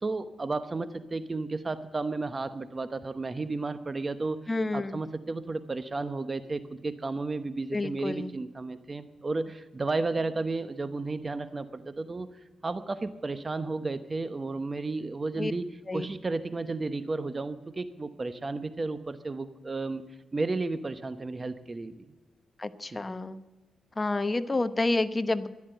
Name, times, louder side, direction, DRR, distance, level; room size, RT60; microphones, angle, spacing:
voice 1, 0.0-4.4 4.7-12.3 12.6-20.0 20.3-21.9 22.9-23.0, right 3 dB, 30° right, 11 dB, 1.0 m, -33 dB
voice 2, 4.5-5.0 7.7-8.3 15.4-15.5 15.9-16.1 22.6-23.4 24.0-25.5, left 2 dB, 25° left, 12 dB, 0.9 m, -29 dB
14.0 x 11.0 x 7.9 m, 1.1 s
cardioid pair, 70°, 0 cm